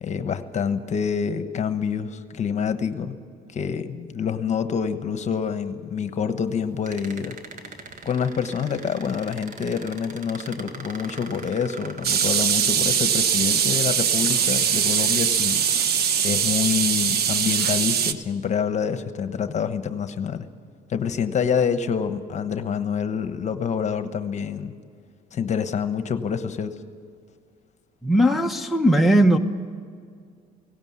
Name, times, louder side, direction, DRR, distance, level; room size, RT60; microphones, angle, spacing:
voice 1, 0.0-3.2 3.5-7.4 8.0-15.6 16.2-20.5 20.9-24.8 25.3-26.8, left 7 dB, 45° left, 10 dB, 1.2 m, -27 dB
sound 1, 6.9-13.1 14.0-14.1 14.6-15.1 15.7-15.9, right 4 dB, 45° right, 1.8 m, -41 dB
sound 2, 12.0-18.1, right 8 dB, 65° right, 1.1 m, -22 dB
voice 2, 28.0-29.4, equal, ahead, 1 dB, 1.0 m, -18 dB
17.5 x 17.5 x 9.6 m, 2.1 s
cardioid pair, 110°, 17 cm